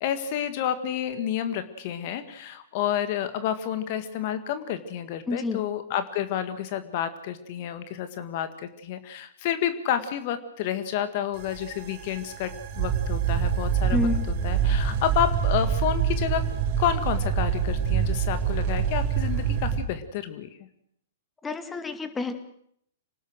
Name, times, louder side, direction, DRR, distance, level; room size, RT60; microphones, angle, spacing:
voice 1, 0.0-14.1 14.4-16.4 16.8-20.5, left 10 dB, 45° left, 10 dB, 1.9 m, -30 dB
voice 2, 5.3-5.6 13.9-14.2 21.4-22.3, left 3 dB, 10° left, 9 dB, 2.3 m, -28 dB
sound 1, 11.4-19.8, right 7 dB, 45° right, 4.1 m, -26 dB
26.5 x 19.0 x 6.3 m, 0.68 s
figure-of-eight pair, 110°, 0 cm